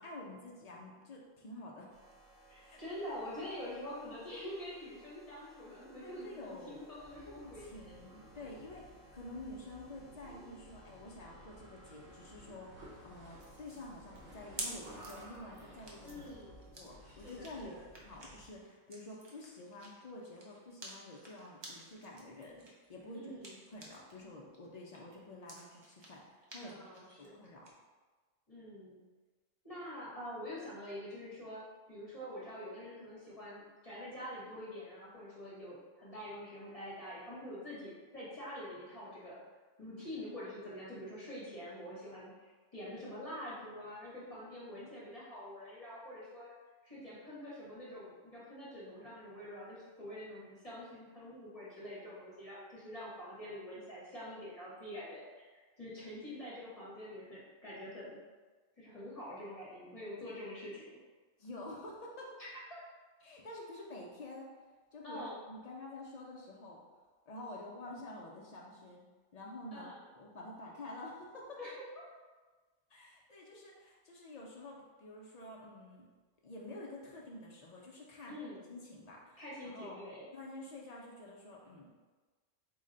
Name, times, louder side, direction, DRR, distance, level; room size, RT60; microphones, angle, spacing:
voice 1, 0.0-1.9 2.6-2.8 6.0-6.8 7.3-16.3 16.8-22.6 22.9-23.4 23.7-26.8 27.2-27.7 61.4-62.4 63.2-64.5 64.9-66.8 67.3-69.0 69.3-71.6 72.9-76.1 76.4-78.4 78.7-80.0 80.3-81.9, left 1 dB, 60° left, -3 dB, 0.4 m, -49 dB
sound 1, 1.9-16.7, right 2 dB, 80° right, 1.4 m, -62 dB
voice 2, 2.5-7.7 16.0-16.6 17.0-17.8 23.1-23.6 26.6-27.3 28.5-29.0 29.6-39.4 39.8-46.5 46.8-55.4 55.8-58.2 58.8-61.0 62.4-62.6 65.0-65.4 69.7-70.0 71.6-71.7 78.3-78.7 79.4-80.3, left 1 dB, 30° left, -9 dB, 0.9 m, -46 dB
sound 2, 6.9-18.6, right 1 dB, 65° right, 1.1 m, -56 dB
sound 3, 13.4-24.2 24.5-27.7, right 1 dB, 40° right, 0.4 m, -51 dB
3.9 x 2.1 x 3.7 m, 1.3 s
omnidirectional pair, 1.3 m